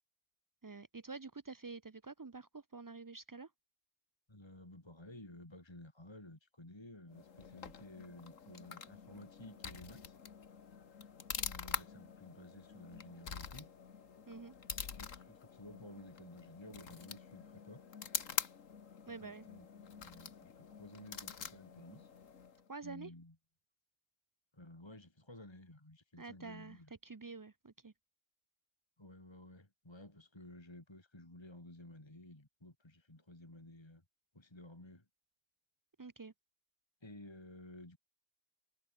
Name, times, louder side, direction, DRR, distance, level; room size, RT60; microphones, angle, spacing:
voice 1, 0.6-3.5 14.3-14.5 19.1-19.5 22.7-23.1 26.2-27.9 36.0-36.3, right 4 dB, 30° right, 0.4 m, -48 dB
voice 2, 4.3-10.2 11.4-13.7 14.9-17.8 19.1-22.1 22.8-23.3 24.5-26.9 29.0-34.0 34.3-35.0 37.0-38.0, left 1 dB, 20° left, 2.8 m, -54 dB
sound 1, 7.1-22.7, left 6 dB, 85° left, 1.9 m, -46 dB
omnidirectional pair, 1.3 m